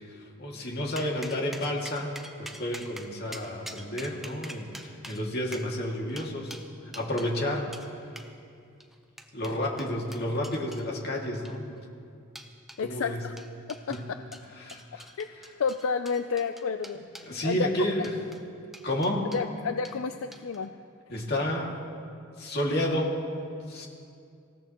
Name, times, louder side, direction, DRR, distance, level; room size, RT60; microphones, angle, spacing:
voice 1, 0.0-2.1 2.4-6.5 6.9-7.7 9.3-11.7 12.8-13.2 13.9-14.0 14.6-15.1 17.2-18.1 18.8-19.3 21.1-21.8 22.4-23.1 23.7-23.9, left 1 dB, 50° left, -1 dB, 2.3 m, -31 dB
sound 1, 1.0-7.3 7.7-7.9 8.2-8.3 8.8-10.8 11.3-11.8 12.4-12.8 13.4-14.0 14.3-17.3 18.0-18.4 18.7-19.5 19.8-20.0 20.3-20.6, right 1 dB, ahead, 0.8 m, -45 dB
voice 2, 12.8-13.4 13.9-14.2 15.2-15.3 15.6-17.0 17.4-17.7 19.3-20.7, left 5 dB, 75° left, 9 dB, 0.4 m, -30 dB
25.5 x 16.0 x 3.0 m, 2.4 s
head